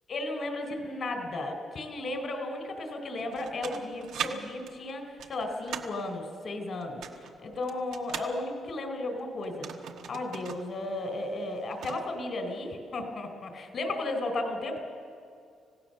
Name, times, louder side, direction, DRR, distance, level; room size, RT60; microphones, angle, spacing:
voice 1, 0.1-9.7 10.1-14.8, left 2 dB, 50° left, 5 dB, 3.9 m, -34 dB
sound 1, 3.2-4.3 4.7-6.0 6.8-8.3 9.4-10.6 10.9-11.0 11.4-12.1, right 8 dB, 80° right, 1.6 m, -39 dB
26.0 x 16.5 x 6.8 m, 2.4 s
cardioid pair, 90°, 0 cm